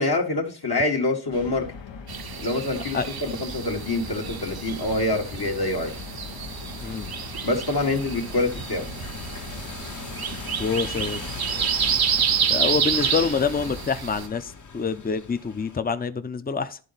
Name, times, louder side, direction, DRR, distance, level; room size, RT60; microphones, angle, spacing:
voice 1, 0.0-1.7 2.4-5.9 7.4-8.9, left 2 dB, 60° left, 2 dB, 1.3 m, -26 dB
sound 1, 1.3-13.8, left 6 dB, 85° left, 0.8 m, -40 dB
sound 2, 2.1-14.3, right 8 dB, 55° right, 0.6 m, -29 dB
sound 3, 3.6-15.8, left 4 dB, 45° left, 0.9 m, -41 dB
voice 2, 6.8-7.1 10.6-11.2 11.6-11.7 12.5-16.8, left 5 dB, 20° left, 11 dB, 0.5 m, -26 dB
11.0 x 3.9 x 3.9 m, 0.39 s
wide cardioid pair, 65°, 43 cm